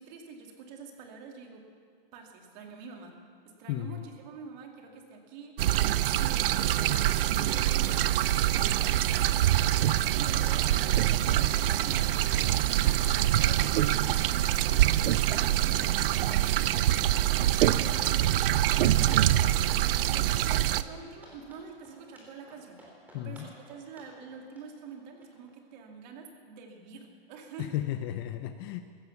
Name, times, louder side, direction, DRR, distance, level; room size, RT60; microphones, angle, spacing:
voice 1, 0.0-1.6 2.1-3.2 3.4-9.5 10.1-16.4 17.5-18.4 18.7-22.8 23.2-27.7, right 5 dB, 45° right, 2 dB, 2.4 m, -47 dB
voice 2, 3.7-4.0 23.1-23.5 27.6-28.8, left 12 dB, 25° left, 9 dB, 0.4 m, -34 dB
sound 1, 5.6-20.8, right 13 dB, 70° right, 0.6 m, -25 dB
sound 2, 10.5-25.5, right 1 dB, 5° right, 3.3 m, -53 dB
16.0 x 12.0 x 7.1 m, 2.2 s
supercardioid pair, 155°, 29 cm